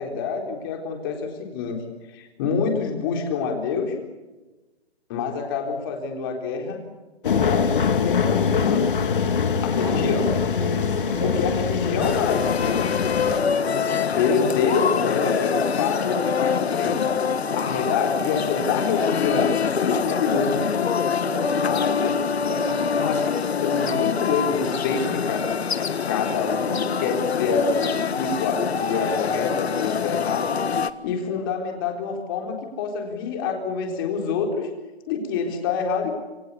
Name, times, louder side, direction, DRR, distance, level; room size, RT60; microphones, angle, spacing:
voice 1, 0.0-1.8 2.1-4.0 5.1-6.8 7.2-9.0 9.6-10.3 11.3-13.1 14.1-17.1 17.5-20.7 21.6-22.6 22.9-23.3 23.6-25.5 26.1-30.5 31.0-34.7 35.1-36.2, left 5 dB, 20° left, 3 dB, 3.9 m, -26 dB
sound 1, 7.2-13.4, left 6 dB, 55° left, 2.3 m, -23 dB
voice 2, 9.6-11.5 13.2-14.1 14.7-15.1 21.0-23.2, right 2 dB, 15° right, -1 dB, 4.2 m, -34 dB
sound 2, 12.0-30.9, left 6 dB, 75° left, 1.7 m, -25 dB
27.5 x 22.0 x 8.5 m, 1.1 s
hypercardioid pair, 175°, 32 cm